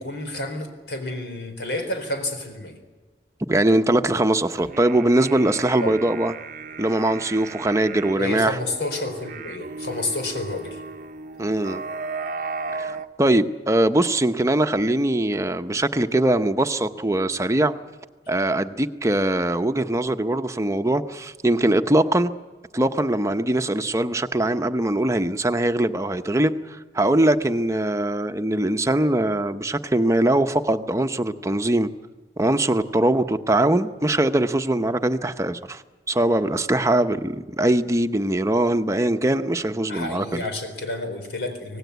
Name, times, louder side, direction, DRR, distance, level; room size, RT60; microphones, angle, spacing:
voice 1, 0.0-2.8 5.8-5.9 8.2-10.8 39.9-41.8, left 2 dB, 75° left, 6 dB, 4.2 m, -30 dB
voice 2, 3.5-6.3 6.8-8.6 11.4-11.8 12.7-17.7 18.3-22.3 22.7-31.9 32.4-35.8 36.1-40.4, right 1 dB, 15° right, 8 dB, 0.9 m, -22 dB
sound 1, 4.6-13.1, right 4 dB, 50° right, 0.8 m, -35 dB
25.5 x 18.5 x 8.2 m, 1.3 s
head